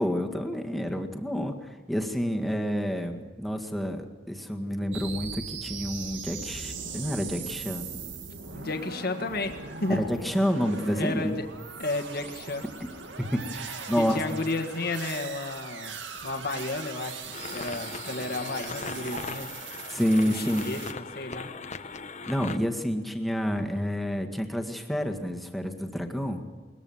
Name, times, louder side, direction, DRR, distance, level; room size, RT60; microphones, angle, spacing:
voice 1, 0.0-1.5 1.9-7.8 9.9-11.4 13.2-14.2 19.9-20.7 22.3-26.4, equal, ahead, 2 dB, 1.9 m, -29 dB
sound 1, 4.9-20.9, right 5 dB, 85° right, 2.0 m, -40 dB
voice 2, 8.5-10.2 10.8-11.4 11.8-12.6 14.0-19.5 20.2-21.5, left 2 dB, 55° left, 5 dB, 1.7 m, -33 dB
sound 2, 9.3-10.5 18.6-19.9, right 1 dB, 60° right, 4.4 m, -44 dB
sound 3, 17.3-22.6, left 4 dB, 40° left, 1.0 m, -39 dB
22.0 x 20.0 x 7.2 m, 1.4 s
head